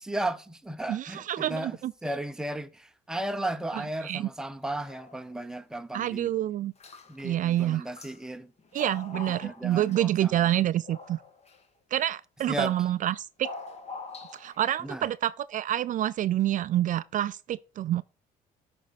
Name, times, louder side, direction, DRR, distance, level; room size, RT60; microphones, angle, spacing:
voice 1, 0.0-6.3 7.1-8.5 9.1-10.3 12.5-12.7 14.8-15.1, right 1 dB, 5° right, 0.7 m, -35 dB
voice 2, 0.9-1.9 4.0-4.3 5.9-6.7 7.2-7.9 8.7-11.2 11.9-13.5 14.3-18.0, right 12 dB, 50° right, 0.4 m, -27 dB
sound 1, 4.6-5.4 5.7-5.8 6.8-7.3 7.5-8.2 8.6-10.3 10.8-11.6 12.6-13.0 13.4-14.7, left 3 dB, 40° left, 1.7 m, -44 dB
13.0 x 5.3 x 4.1 m
cardioid pair, 110°, 17 cm